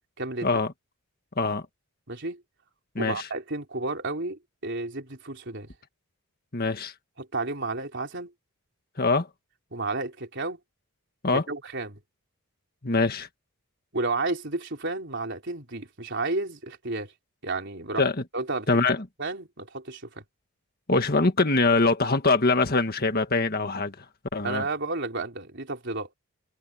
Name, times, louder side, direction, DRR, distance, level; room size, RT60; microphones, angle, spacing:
voice 1, 0.2-0.5 2.1-2.4 3.0-5.7 7.2-8.3 9.7-10.6 11.3-12.0 13.9-17.1 17.4-18.0 18.3-18.8 19.2-20.2 24.4-26.1, right 3 dB, 50° right, 4.1 m, -32 dB
voice 2, 2.9-3.3 6.5-6.9 9.0-9.3 11.2-11.4 12.8-13.3 18.0-18.1 18.7-19.0 20.9-24.0 24.3-24.6, left 3 dB, 45° left, 1.7 m, -23 dB
head